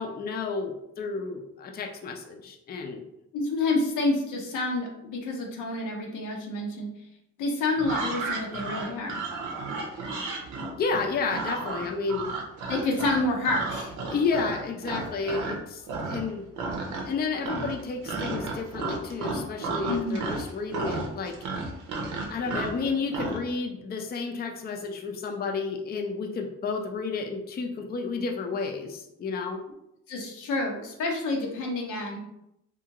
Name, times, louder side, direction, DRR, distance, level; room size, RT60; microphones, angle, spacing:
voice 1, 0.0-3.0 10.8-12.3 14.1-16.4 17.1-21.3 22.3-29.6, left 4 dB, 30° left, 2 dB, 0.4 m, -31 dB
voice 2, 3.3-6.9 7.4-9.2 12.7-13.9 19.9-20.3 30.1-32.2, left 2 dB, 90° left, 1 dB, 0.8 m, -28 dB
sound 1, 7.8-15.6 15.9-16.3 16.6-17.2 17.4-23.4, right 3 dB, 90° right, 0.7 m, -33 dB
2.8 x 2.4 x 2.8 m, 0.81 s
cardioid pair, 90°, 30 cm